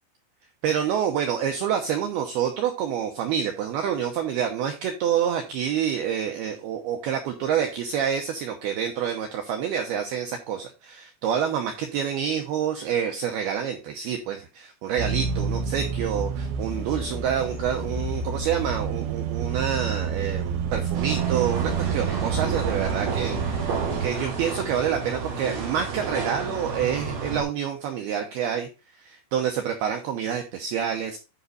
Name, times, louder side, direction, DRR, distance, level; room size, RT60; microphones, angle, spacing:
voice 1, 0.6-31.2, right 8 dB, 85° right, 4 dB, 2.2 m, -27 dB
sound 1, 15.0-24.1, right 6 dB, 70° right, 2.3 m, -29 dB
sound 2, 20.9-27.4, right 4 dB, 50° right, 5.0 m, -31 dB
11.0 x 5.3 x 4.1 m, 0.30 s
omnidirectional pair, 5.9 m